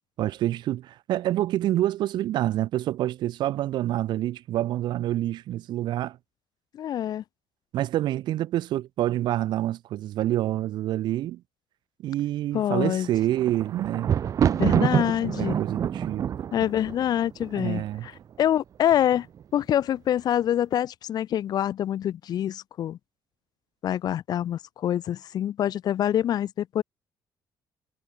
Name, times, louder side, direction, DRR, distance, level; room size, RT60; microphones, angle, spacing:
voice 1, 0.2-6.2 7.7-11.4 12.0-14.1 15.2-16.3 17.5-18.1, right 13 dB, 75° right, 1.1 m, -27 dB
voice 2, 6.7-7.2 12.5-13.1 14.5-15.5 16.5-18.1 18.4-19.3 19.5-23.0 23.8-26.8, left 11 dB, 60° left, 1.4 m, -26 dB
Thunder, 13.0-18.2 18.9-19.4 19.7-19.8, right 9 dB, 45° right, 0.8 m, -26 dB
cardioid pair, 130°, 8 cm